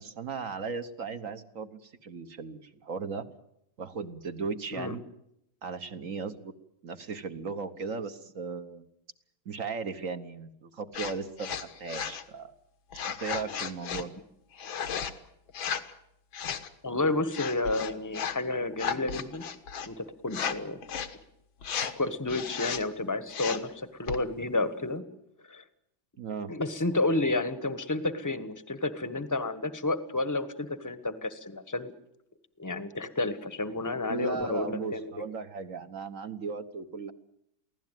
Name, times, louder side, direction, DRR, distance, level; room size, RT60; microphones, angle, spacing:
voice 1, 0.0-3.3 3.8-5.0 5.6-6.5 6.8-8.9 9.4-12.5 13.2-14.1 26.2-26.5 34.1-37.1, right 5 dB, 45° right, 10 dB, 1.3 m, -36 dB
sound 1, 10.9-11.1 11.4-12.2 12.9-14.0 14.6-15.1 15.5-15.9 16.3-16.7 17.3-18.4 18.7-19.9 20.3-20.6 20.8-21.1 21.6-21.9 22.3-22.8 23.3-23.7 24.1-24.2, left 7 dB, 75° left, 2.1 m, -34 dB
voice 2, 16.8-19.4 19.9-20.8 21.9-25.0 25.5-25.6 26.5-31.9 32.6-35.2, left 2 dB, 10° left, 12 dB, 1.1 m, -31 dB
23.5 x 16.5 x 9.2 m, 0.79 s
omnidirectional pair, 2.2 m